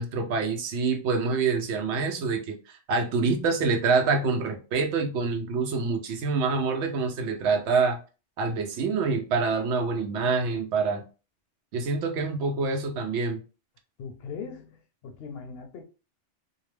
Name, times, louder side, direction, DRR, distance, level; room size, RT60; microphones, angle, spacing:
voice 1, 0.0-8.0 8.4-11.0 11.7-13.4, right 4 dB, 75° right, 0.9 m, -26 dB
voice 2, 14.0-14.8 15.0-15.8, left 5 dB, 65° left, 0.8 m, -39 dB
2.7 x 2.0 x 3.2 m
omnidirectional pair, 1.2 m